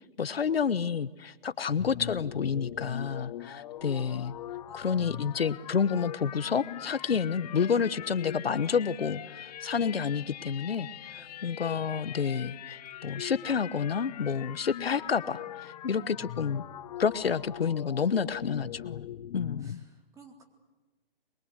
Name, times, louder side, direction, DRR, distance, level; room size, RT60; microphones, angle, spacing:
voice 1, 0.2-4.3 4.7-16.6 17.0-19.1 19.3-19.8, left 6 dB, 90° left, 16 dB, 1.2 m, -29 dB
sound 1, 1.7-19.8, left 12 dB, 45° left, 0.9 m, -42 dB
voice 2, 4.7-5.0 11.1-11.4 15.8-16.0 19.6-20.4, right 3 dB, 10° right, 3 dB, 3.7 m, -57 dB
27.5 x 23.0 x 8.2 m, 1.2 s
hypercardioid pair, 145°, 29 cm